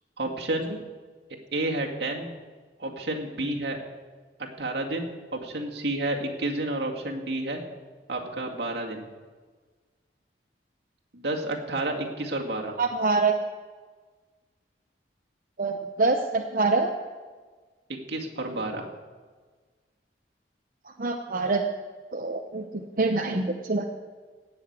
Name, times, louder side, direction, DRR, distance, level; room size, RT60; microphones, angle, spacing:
voice 1, 0.2-0.7 1.5-2.3 2.8-3.8 4.6-7.6 8.1-9.0 11.1-12.7 18.1-18.8, right 2 dB, 75° right, 1 dB, 2.1 m, -30 dB
voice 2, 12.8-13.3 15.6-16.9 21.0-21.6 22.1-22.6 23.0-23.8, right 3 dB, 50° right, 3 dB, 0.8 m, -25 dB
17.5 x 6.1 x 8.7 m, 1.5 s
head